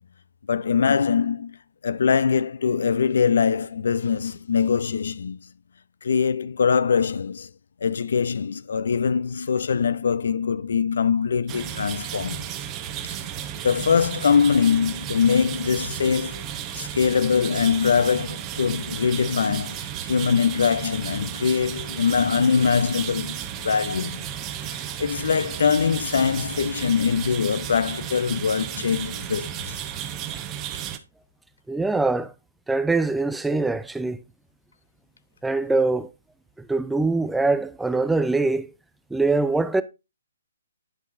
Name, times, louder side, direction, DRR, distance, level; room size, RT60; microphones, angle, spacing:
voice 1, 0.5-1.6 1.8-5.5 6.0-7.5 7.8-12.4 13.0-13.2 13.6-24.2 25.0-29.8, left 6 dB, 65° left, 0.5 m, -23 dB
sound 1, 11.5-31.0, right 10 dB, 25° right, 0.8 m, -34 dB
voice 2, 31.7-32.3 32.7-34.2 35.4-36.1 36.6-38.7 39.1-39.8, right 3 dB, 5° right, 0.4 m, -23 dB
10.5 x 5.5 x 2.6 m
figure-of-eight pair, 135°, 0 cm